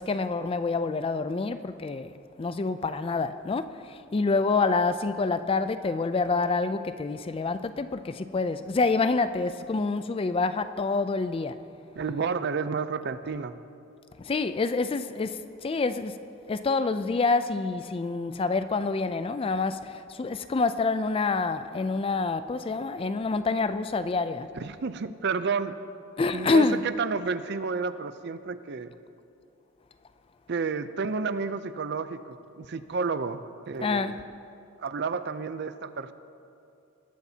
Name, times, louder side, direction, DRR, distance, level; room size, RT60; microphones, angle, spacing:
voice 1, 0.0-2.1 2.4-3.7 4.1-11.6 14.3-16.2 16.5-24.5 26.2-26.8 33.8-34.2, left 3 dB, 25° left, 0.3 m, -27 dB
voice 2, 12.0-13.6 24.6-25.8 26.3-28.9 30.5-34.2 34.8-36.1, right 5 dB, 55° right, 0.5 m, -31 dB
20.5 x 12.0 x 2.8 m
head